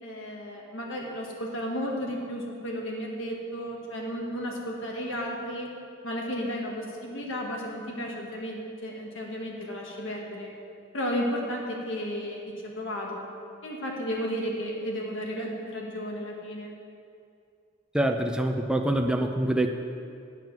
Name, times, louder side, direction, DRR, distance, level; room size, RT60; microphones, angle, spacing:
voice 1, 0.0-5.7 6.0-10.5 10.9-13.3 13.6-16.7, equal, 65° left, -1 dB, 1.7 m, -33 dB
voice 2, 17.9-19.7, right 1 dB, 5° right, 4 dB, 0.4 m, -25 dB
9.1 x 7.5 x 6.0 m, 2.4 s
head